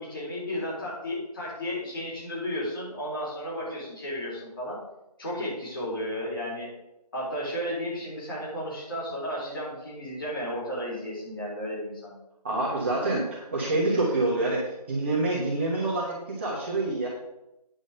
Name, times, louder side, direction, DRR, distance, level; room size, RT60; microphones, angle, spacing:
voice 1, 0.0-4.8 5.2-6.7 7.1-12.1, equal, 35° left, -5 dB, 4.0 m, -33 dB
voice 2, 12.4-17.1, right 2 dB, 20° right, -6 dB, 1.3 m, -27 dB
9.7 x 5.3 x 6.5 m, 0.91 s
figure-of-eight pair, 170°, 21 cm